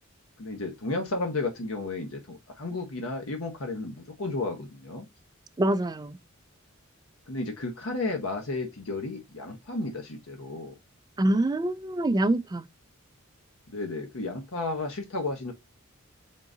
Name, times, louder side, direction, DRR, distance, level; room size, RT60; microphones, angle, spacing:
voice 1, 0.4-5.1 7.3-10.8 13.7-15.5, left 2 dB, 70° left, 0.9 m, -33 dB
voice 2, 5.6-6.2 11.2-12.7, right 1 dB, 20° right, 0.3 m, -25 dB
3.8 x 3.8 x 3.7 m
head